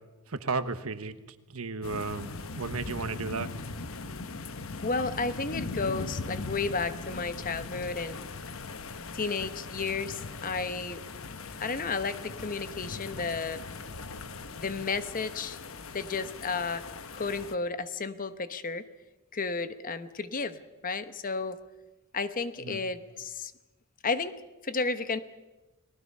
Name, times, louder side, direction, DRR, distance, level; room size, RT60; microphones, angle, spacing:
voice 1, 0.3-1.2 1.5-3.5 22.6-22.8, right 4 dB, 75° right, 12 dB, 1.2 m, -34 dB
sound 1, 1.8-17.5, left 3 dB, 65° left, 1.1 m, -40 dB
voice 2, 4.8-8.2 9.1-11.0 11.6-13.6 14.5-15.6 15.9-16.8 17.1-18.9 19.3-21.6 22.1-23.5 24.0-24.3 24.6-25.2, left 4 dB, 40° left, 12 dB, 1.0 m, -32 dB
30.0 x 19.0 x 5.5 m, 1.1 s
head